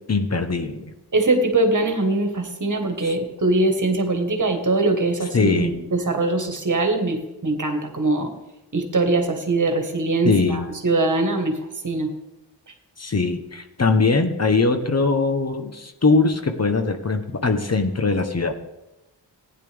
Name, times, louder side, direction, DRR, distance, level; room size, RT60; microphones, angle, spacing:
voice 1, 0.1-0.8 3.0-3.1 5.3-5.7 10.2-10.7 13.0-18.5, left 3 dB, 35° left, 6 dB, 1.1 m, -21 dB
voice 2, 1.1-8.3 8.7-11.6 11.8-12.1, right 2 dB, 45° right, 5 dB, 1.7 m, -22 dB
16.0 x 10.0 x 3.5 m, 0.95 s
wide cardioid pair, 85°, 42 cm